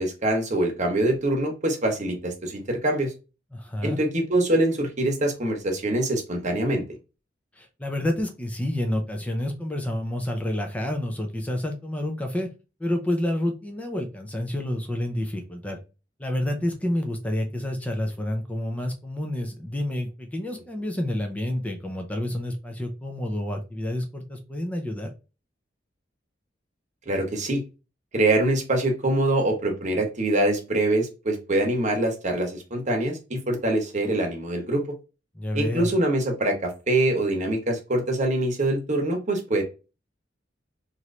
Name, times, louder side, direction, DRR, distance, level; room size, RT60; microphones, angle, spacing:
voice 1, 0.0-3.1 3.8-6.8 27.1-27.6 28.1-34.8 35.5-39.6, right 1 dB, 40° right, 2 dB, 1.0 m, -24 dB
voice 2, 3.5-4.0 7.6-12.5 12.8-15.8 16.2-25.1 35.3-35.9, left 1 dB, 10° left, 3 dB, 0.5 m, -29 dB
3.0 x 2.6 x 3.1 m, 0.30 s
head